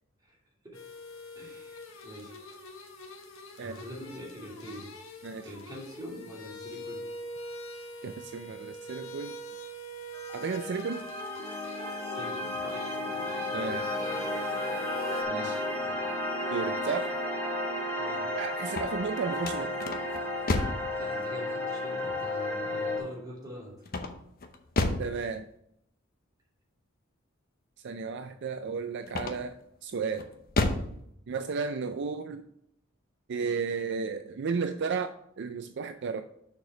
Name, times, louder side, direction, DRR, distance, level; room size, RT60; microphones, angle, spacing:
sound 1, 0.7-15.2, equal, 80° left, 1.4 m, -44 dB
voice 1, 1.4-2.3 3.6-4.9 5.4-7.0 12.0-12.8 15.8-15.9 18.0-18.3 21.0-23.7, equal, 20° right, -3 dB, 2.5 m, -44 dB
voice 2, 8.0-9.4 10.3-11.1 13.5-13.8 15.3-15.7 16.5-17.2 18.3-19.8 25.0-25.5 27.8-29.5 29.8-30.3 31.3-32.4 33.3-35.1 35.4-36.2, right 5 dB, 60° right, 8 dB, 0.4 m, -33 dB
sound 2, 10.1-23.0, left 1 dB, 10° left, 1.9 m, -33 dB
sound 3, 18.6-20.9 23.9-25.2 29.1-29.6 30.1-30.9, left 2 dB, 45° left, 0.8 m, -30 dB
6.6 x 4.9 x 6.1 m, 0.75 s
head